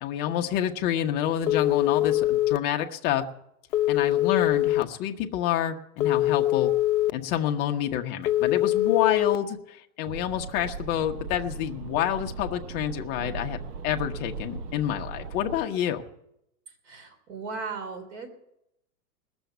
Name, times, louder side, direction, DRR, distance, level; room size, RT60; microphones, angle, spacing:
voice 1, 0.0-3.2 3.9-6.7 7.1-13.6 13.8-16.1, left 10 dB, 20° left, 4 dB, 0.7 m, -28 dB
Telephone, 1.5-2.6 3.7-4.8 6.0-7.1 8.3-9.4, left 14 dB, 75° left, 0.7 m, -23 dB
sound 1, 10.0-15.6, right 4 dB, 75° right, 1.0 m, -38 dB
voice 2, 16.8-18.3, right 4 dB, 50° right, 7 dB, 3.6 m, -36 dB
19.5 x 7.0 x 9.1 m, 0.82 s
hypercardioid pair, 150°, 47 cm